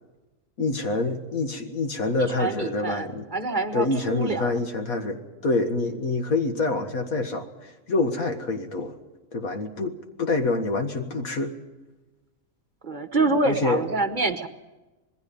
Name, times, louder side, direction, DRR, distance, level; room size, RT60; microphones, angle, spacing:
voice 1, 0.6-3.3 3.7-9.0 9.3-11.5 13.4-13.8, left 3 dB, 85° left, 6 dB, 2.1 m, -26 dB
voice 2, 2.2-4.5 12.8-14.5, right 3 dB, 40° right, 9 dB, 1.0 m, -26 dB
26.0 x 20.0 x 5.4 m, 1.1 s
omnidirectional pair, 1.4 m